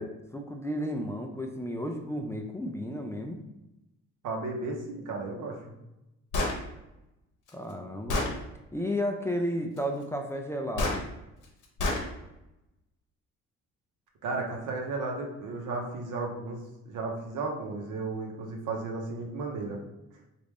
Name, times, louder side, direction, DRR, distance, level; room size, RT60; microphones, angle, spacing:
voice 1, 0.0-3.4 7.5-8.2 8.7-11.0, equal, 10° left, 2 dB, 0.3 m, -33 dB
voice 2, 4.2-5.7 14.2-16.6 16.9-19.8, right 3 dB, 80° right, 1 dB, 0.8 m, -34 dB
Gunshot gunfire, 6.3-6.6 7.5-7.6 8.1-8.3 10.8-11.0 11.8-12.0, left 2 dB, 80° left, 0.8 m, -27 dB
3.1 x 2.5 x 3.4 m, 0.93 s
cardioid pair, 90°, 30 cm